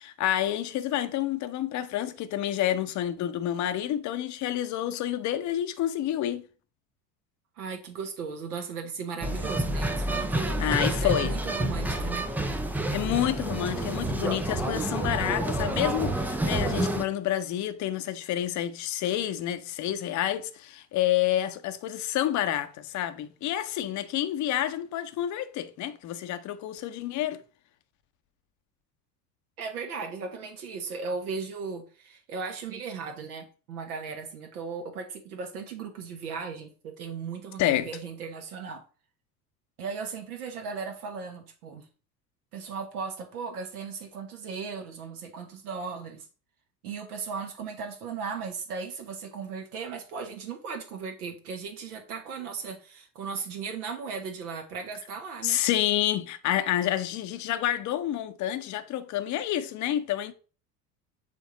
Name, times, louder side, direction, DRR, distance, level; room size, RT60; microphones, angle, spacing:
voice 1, 0.0-6.4 10.6-11.3 12.9-27.4 37.6-37.9 55.4-60.3, left 12 dB, 35° left, 0.8 m, -29 dB
voice 2, 7.6-12.3 29.6-38.8 39.8-41.9 42.5-46.3 46.8-55.6, right 5 dB, 65° right, 1.2 m, -37 dB
sound 1, 9.2-17.0, right 1 dB, 5° right, 0.4 m, -29 dB
7.5 x 3.4 x 3.9 m
figure-of-eight pair, 70°, 48 cm